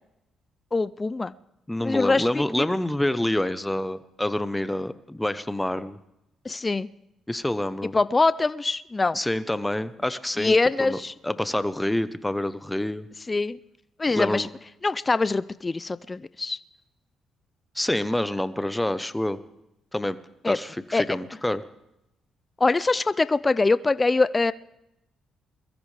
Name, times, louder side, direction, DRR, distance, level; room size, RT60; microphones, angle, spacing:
voice 1, 0.7-1.3 1.8-2.7 6.5-6.9 7.9-9.2 10.4-11.1 13.3-13.6 14.0-14.5 14.8-16.6 20.4-20.6 20.9-21.1 22.6-24.5, left 3 dB, 25° left, 17 dB, 0.4 m, -23 dB
voice 2, 1.7-6.0 7.3-8.0 9.1-13.1 14.1-14.5 17.7-19.4 19.9-20.2 20.5-21.6, left 1 dB, 10° left, 13 dB, 0.9 m, -27 dB
22.5 x 14.5 x 3.4 m, 0.88 s
cardioid pair, 90°, 0 cm